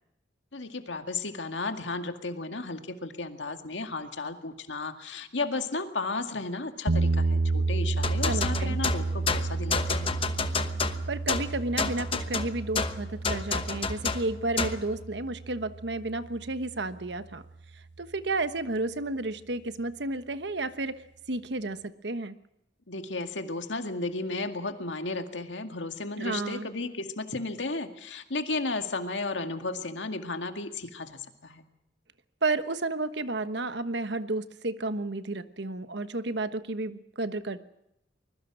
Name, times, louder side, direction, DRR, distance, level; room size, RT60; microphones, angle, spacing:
voice 1, 0.5-10.1 22.9-31.6, left 3 dB, 85° left, 6 dB, 2.0 m, -34 dB
sound 1, 6.9-16.9, right 3 dB, 85° right, 1.0 m, -31 dB
sound 2, 8.0-14.9, left 4 dB, 30° left, 1.1 m, -30 dB
voice 2, 8.3-8.8 11.1-17.4 18.0-21.0 21.3-22.3 26.2-26.7 32.4-37.6, right 2 dB, 70° right, 11 dB, 1.2 m, -32 dB
24.5 x 21.5 x 6.2 m, 0.82 s
head